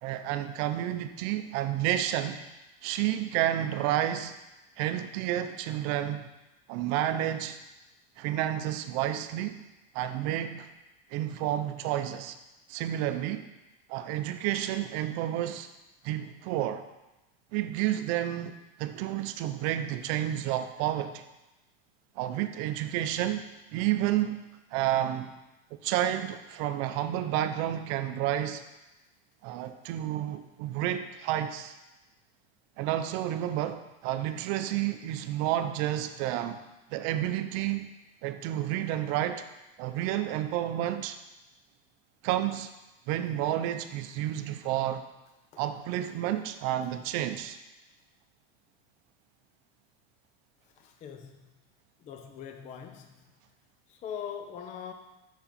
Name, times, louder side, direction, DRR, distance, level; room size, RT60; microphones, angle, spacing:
voice 1, 0.0-2.4 2.8-4.4 4.8-6.2 6.7-7.6 8.2-9.6 9.9-10.7 11.1-12.4 12.7-13.5 13.9-15.7 16.0-16.9 17.5-21.2 22.2-23.5 23.7-24.4 24.7-25.4 25.8-28.6 29.4-31.8 32.8-36.6 36.9-37.9 38.2-39.4 39.8-41.2 42.2-42.7 43.1-45.0 45.6-47.6, right 12 dB, 55° right, 9 dB, 0.6 m, -30 dB
voice 2, 50.8-51.5 52.0-53.1 53.9-54.9, left 8 dB, 25° left, 6 dB, 0.4 m, -41 dB
6.0 x 4.8 x 5.1 m, 1.0 s
supercardioid pair, 135°, 32 cm